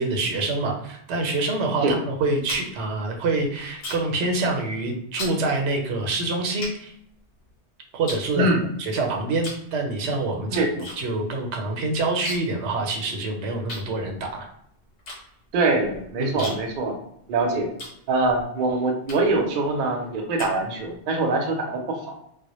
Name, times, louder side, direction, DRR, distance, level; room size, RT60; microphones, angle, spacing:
voice 1, 0.0-6.9 7.9-8.5 8.8-10.7 11.0-14.5 16.2-16.5, right 2 dB, 90° right, 2 dB, 0.9 m, -26 dB
sound 1, 2.1-4.2 4.5-4.8 5.2-5.4 6.0-6.1 6.6-7.6 8.1-8.9 9.4-9.7 10.0-11.0 11.2-11.3 11.6-12.6 12.9-13.0 13.7-18.5 19.0-19.5 19.9-21.0, left 2 dB, 90° left, 1.0 m, -38 dB
voice 2, 10.5-10.8 15.5-16.9 17.3-17.7 18.1-22.2, right 2 dB, 55° right, 2 dB, 0.6 m, -23 dB
2.1 x 2.0 x 2.9 m, 0.72 s
omnidirectional pair, 1.1 m